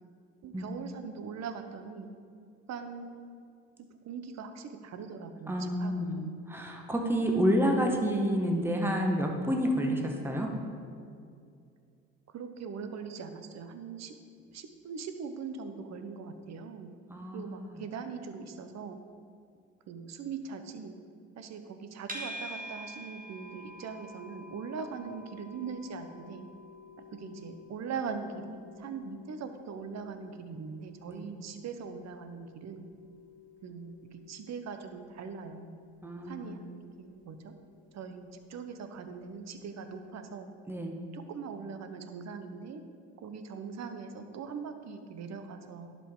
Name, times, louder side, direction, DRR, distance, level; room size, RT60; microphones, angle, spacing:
voice 1, 0.4-2.1 2.7-3.3 3.8-6.5 12.3-14.1 14.5-16.9 17.3-19.0 19.9-21.0 21.4-26.5 27.2-32.8 33.6-35.7 36.3-36.6 37.0-37.6 37.9-40.5 41.1-42.8 43.2-46.0, right 5 dB, 45° right, 8 dB, 0.9 m, -41 dB
voice 2, 5.5-6.1 6.5-10.5 17.1-17.8 31.1-31.2 36.0-36.5 40.7-40.9, equal, 5° right, 1 dB, 1.3 m, -29 dB
sound 1, 22.1-39.3, equal, 25° right, 1.6 m, -50 dB
11.0 x 5.1 x 3.8 m, 2.3 s
hypercardioid pair, 60°, 36 cm